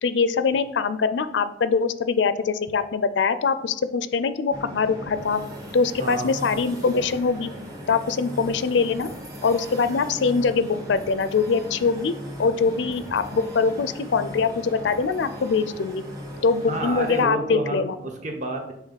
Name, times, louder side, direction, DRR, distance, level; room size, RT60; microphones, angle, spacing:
voice 1, 0.0-5.4 5.7-7.5 7.9-9.1 9.4-12.1 12.4-16.0 16.4-18.0, left 5 dB, 75° left, 13 dB, 0.4 m, -23 dB
sound 1, 4.5-17.2, equal, 20° right, 1.3 m, -38 dB
voice 2, 6.0-6.4 16.7-18.7, right 1 dB, 40° right, 3 dB, 1.0 m, -29 dB
5.7 x 3.5 x 5.7 m, 0.78 s
head